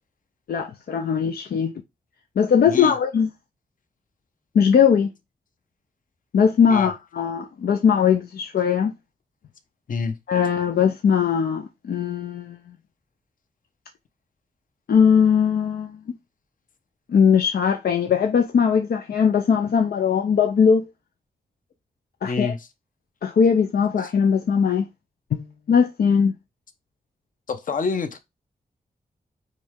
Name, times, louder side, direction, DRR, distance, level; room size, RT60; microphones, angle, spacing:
voice 1, 0.5-1.7 2.4-3.3 4.5-5.1 6.3-8.9 10.3-12.6 14.9-15.9 17.1-20.9 22.2-22.5 23.2-24.9 25.3-26.3, left 7 dB, 90° left, 0.7 m, -20 dB
voice 2, 22.2-22.7 24.0-24.1 27.5-28.2, left 4 dB, 60° left, 1.0 m, -27 dB
8.4 x 3.3 x 3.6 m
wide cardioid pair, 155°, 15 cm